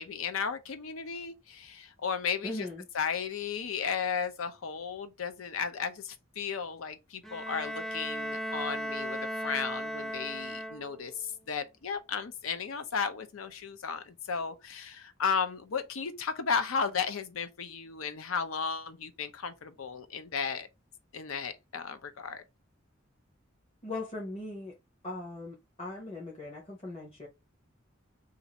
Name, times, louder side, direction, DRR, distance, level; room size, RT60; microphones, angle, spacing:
voice 1, 0.0-2.7 2.9-20.7 21.1-22.4, left 6 dB, 85° left, 0.6 m, -34 dB
voice 2, 2.4-2.9 23.8-24.7 25.0-27.3, left 2 dB, 30° left, 0.9 m, -39 dB
Bowed string instrument, 7.2-11.2, equal, ahead, 0.3 m, -36 dB
2.6 x 2.5 x 4.0 m
head